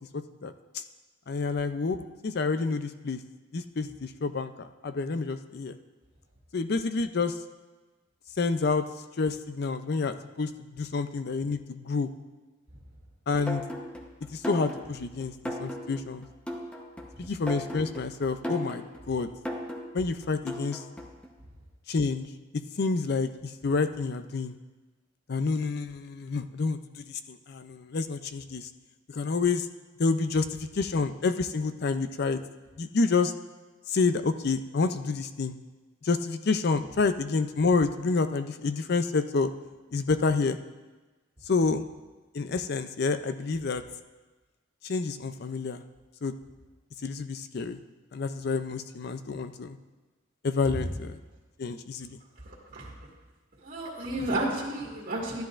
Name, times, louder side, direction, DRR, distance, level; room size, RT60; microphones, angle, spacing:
voice 1, 0.1-0.8 1.3-3.2 3.5-5.8 6.5-7.4 8.4-8.8 9.2-12.1 13.3-13.6 14.3-16.3 17.2-19.3 19.9-20.8 21.9-22.3 22.8-24.6 25.3-28.7 29.1-29.7 30.0-32.4 32.8-33.3 33.9-35.6 36.0-39.5 39.9-40.6 41.5-41.9 42.3-43.8 44.8-45.8 46.2-46.3 47.0-47.8 48.1-49.8 50.4-51.2 51.6-52.2, left 4 dB, 55° left, 10 dB, 0.5 m, -28 dB
sound 1, 13.5-21.3, equal, 5° left, 0.9 m, -38 dB
voice 2, 52.4-52.9 53.6-55.4, right 1 dB, 50° right, -6 dB, 2.0 m, -32 dB
13.0 x 10.5 x 2.5 m, 1.2 s
head